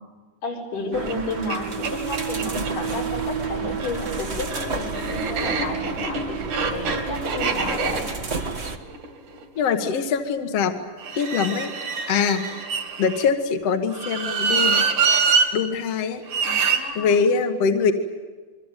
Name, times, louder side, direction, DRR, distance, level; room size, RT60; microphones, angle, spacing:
voice 1, 0.4-8.1 16.4-17.4, left 2 dB, 85° left, 0 dB, 6.6 m, -32 dB
sound 1, 0.9-8.8, right 5 dB, 40° right, 0.9 m, -30 dB
sound 2, 1.1-1.2 1.5-1.6 1.8-2.7 3.7-9.8 11.0-13.3 13.9-15.5 16.3-16.8, right 5 dB, 65° right, 3.9 m, -25 dB
voice 2, 9.6-10.7 11.2-11.7 12.1-12.7 13.0-14.9 15.5-16.2 17.0-17.9, left 6 dB, 55° left, 6 dB, 2.3 m, -23 dB
28.0 x 23.0 x 9.1 m, 1.4 s
omnidirectional pair, 3.6 m